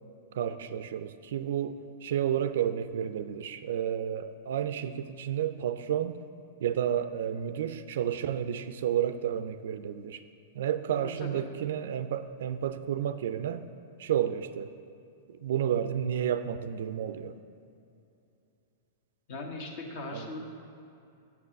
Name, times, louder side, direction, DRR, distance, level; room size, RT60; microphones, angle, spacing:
voice 1, 0.3-6.2 6.6-10.2 10.5-13.7 14.0-14.7 15.3-17.4 20.1-20.3, right 9 dB, 65° right, 12 dB, 0.4 m, -31 dB
voice 2, 11.0-11.4 19.3-20.5, left 2 dB, 55° left, 2 dB, 1.3 m, -39 dB
7.1 x 6.0 x 6.3 m, 2.6 s
figure-of-eight pair, 100°, 0 cm